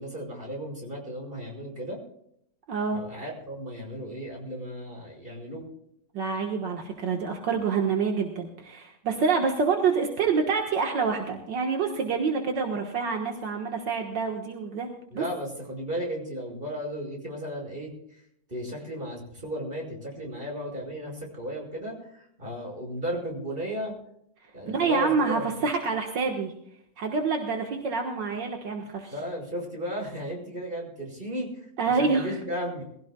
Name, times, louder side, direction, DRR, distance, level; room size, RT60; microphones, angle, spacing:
voice 1, 0.0-2.0 2.9-5.7 15.1-17.9 18.5-24.0 24.5-25.5 29.1-31.5 32.0-32.8, equal, 30° right, 0 dB, 5.5 m, -35 dB
voice 2, 2.7-3.0 6.1-14.9 15.1-15.2 24.7-26.5 27.0-29.1 31.8-32.4, right 5 dB, 75° right, 3 dB, 2.1 m, -27 dB
22.5 x 16.0 x 2.3 m, 0.73 s
omnidirectional pair, 2.0 m